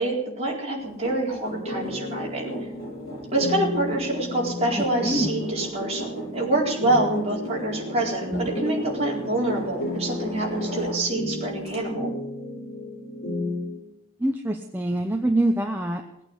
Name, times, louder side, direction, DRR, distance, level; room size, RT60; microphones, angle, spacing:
voice 1, 0.0-2.5 3.3-12.1, right 2 dB, 30° right, -3 dB, 4.2 m, -26 dB
sound 1, 0.8-11.3 11.7-11.8, equal, 50° left, 7.8 m, -37 dB
sound 2, 1.5-13.8, left 1 dB, 70° left, 5.3 m, -34 dB
voice 2, 4.7-5.3 8.3-8.5 14.2-16.0, right 1 dB, 10° right, 3 dB, 0.8 m, -25 dB
19.0 x 8.8 x 8.0 m, 0.87 s
head